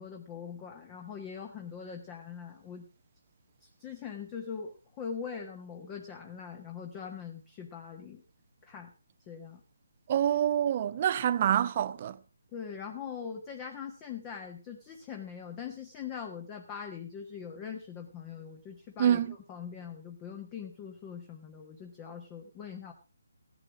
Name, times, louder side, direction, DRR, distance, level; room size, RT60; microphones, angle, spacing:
voice 1, 0.0-2.9 3.6-8.2 8.6-8.9 9.3-9.6 12.5-19.2 19.5-22.9, left 7 dB, 15° left, 1.3 m, -42 dB
voice 2, 10.1-12.2 19.0-19.3, right 10 dB, 30° right, 0.8 m, -26 dB
15.5 x 11.0 x 4.9 m
hypercardioid pair, 165°, 0 cm